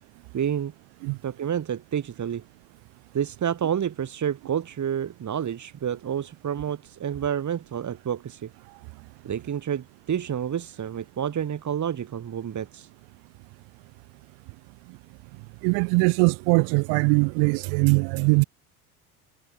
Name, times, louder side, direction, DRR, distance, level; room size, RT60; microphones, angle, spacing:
voice 1, 0.3-0.7 1.2-2.4 3.1-8.5 9.2-12.9, right 9 dB, 40° right, 7.1 m, -29 dB
voice 2, 15.6-18.4, right 36 dB, 75° right, 4.9 m, -21 dB
hypercardioid pair, 80°, 43 cm